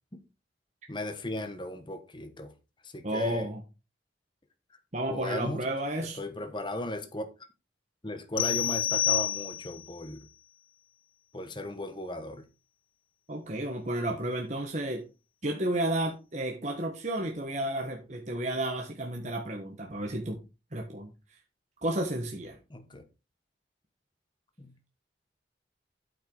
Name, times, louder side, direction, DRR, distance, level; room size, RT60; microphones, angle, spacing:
voice 1, 0.9-2.5 2.8-3.5 5.1-5.6 6.0-7.3 8.0-10.2 11.3-12.4 22.7-23.0 24.6-24.7, left 1 dB, 25° left, 1.2 m, -36 dB
voice 2, 3.0-3.6 4.9-6.2 13.3-15.1 15.4-20.4 20.7-21.1 21.8-22.6, right 1 dB, 40° right, 1.5 m, -32 dB
sound 1, 8.4-9.9, left 11 dB, 55° left, 0.5 m, -28 dB
9.1 x 7.8 x 4.0 m
head